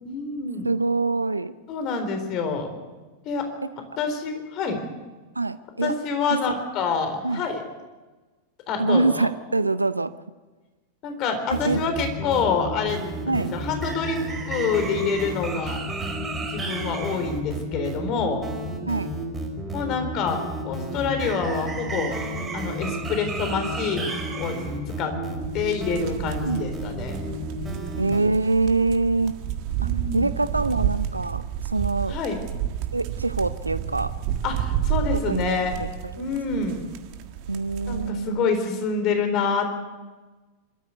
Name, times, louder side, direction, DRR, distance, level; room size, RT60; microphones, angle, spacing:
voice 1, 0.0-0.7 1.7-2.7 3.2-3.5 3.8-4.8 5.8-7.6 8.7-9.3 11.0-14.2 14.5-15.8 16.5-18.4 19.7-22.2 22.5-24.6 24.9-25.2 25.5-27.2 29.8-30.3 32.1-32.4 34.4-35.8 36.2-36.8 37.9-39.7, left 5 dB, 35° left, 7 dB, 4.1 m, -27 dB
voice 2, 0.6-1.5 5.4-5.9 6.3-6.6 7.2-7.4 8.8-10.1 11.5-11.8 13.3-13.5 18.9-19.1 26.4-26.6 28.0-29.3 29.8-32.2 32.9-34.1 35.3-35.9 36.1-36.7 37.5-38.5, right 3 dB, 80° right, 15 dB, 0.6 m, -25 dB
sound 1, 11.5-28.2, right 1 dB, 15° right, 4.8 m, -31 dB
sound 2, 25.4-38.1, right 10 dB, 45° right, 1.7 m, -30 dB
25.5 x 14.0 x 8.3 m, 1.3 s
figure-of-eight pair, 90°, 0 cm